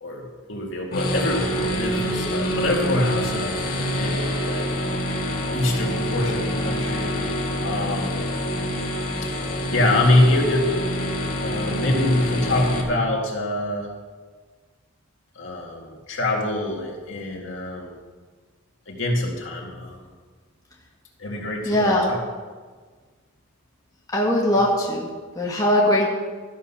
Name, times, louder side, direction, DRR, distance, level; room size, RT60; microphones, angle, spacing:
voice 1, 0.0-4.7 5.5-7.1 7.6-8.3 9.5-10.7 11.4-13.9 15.4-17.9 18.9-20.0 21.2-22.2, left 1 dB, 65° left, -1 dB, 2.1 m, -25 dB
sound 1, 0.9-12.8, equal, 45° left, 1.6 m, -26 dB
voice 2, 21.7-22.1 24.1-25.1 25.4-26.1, left 1 dB, 15° left, -3 dB, 1.6 m, -20 dB
13.5 x 7.7 x 5.7 m, 1.5 s
head